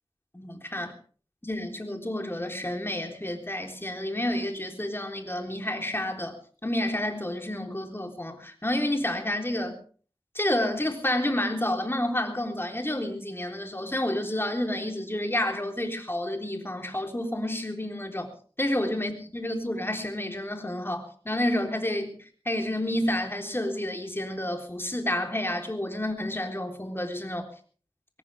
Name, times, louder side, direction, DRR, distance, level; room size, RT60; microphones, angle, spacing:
voice 1, 0.3-0.9 1.4-9.8 10.4-18.3 18.6-22.2 22.5-27.5, left 1 dB, 20° left, 4 dB, 3.8 m, -30 dB
21.5 x 18.5 x 3.5 m, 0.42 s
wide cardioid pair, 55°, 10 cm